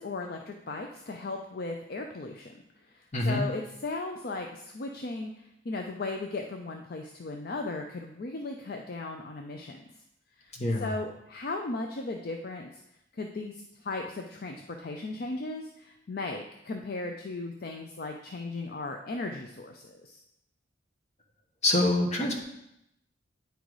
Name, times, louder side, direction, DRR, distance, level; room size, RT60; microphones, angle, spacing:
voice 1, 0.0-2.5 2.8-5.3 5.6-9.8 10.4-10.5 10.8-12.8 13.1-20.2, left 3 dB, 50° left, 4 dB, 0.5 m, -36 dB
voice 2, 3.1-3.5 10.5-10.9 21.6-22.4, left 1 dB, 35° left, 0 dB, 1.1 m, -26 dB
9.2 x 3.9 x 4.7 m, 0.83 s
head